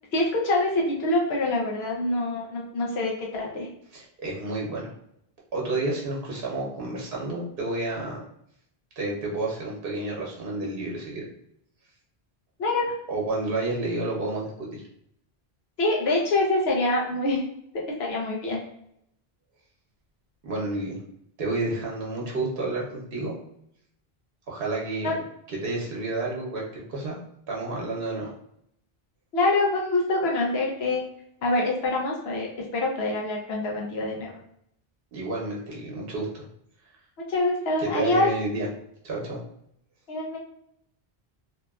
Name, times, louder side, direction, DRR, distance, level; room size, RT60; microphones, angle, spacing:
voice 1, 0.1-3.7 12.6-12.9 15.8-17.4 17.7-18.6 25.0-25.2 29.3-31.0 31.4-34.4 37.2-38.3 40.1-40.4, left 2 dB, 80° left, -2 dB, 0.9 m, -25 dB
voice 2, 3.9-4.9 5.5-8.2 9.0-11.3 13.1-14.9 20.4-21.0 21.4-23.4 24.5-25.2 25.5-27.2 27.5-28.3 35.1-36.4 37.8-38.7 39.0-39.4, right 2 dB, 65° right, -3 dB, 0.9 m, -30 dB
2.8 x 2.2 x 2.3 m, 0.74 s
omnidirectional pair, 1.0 m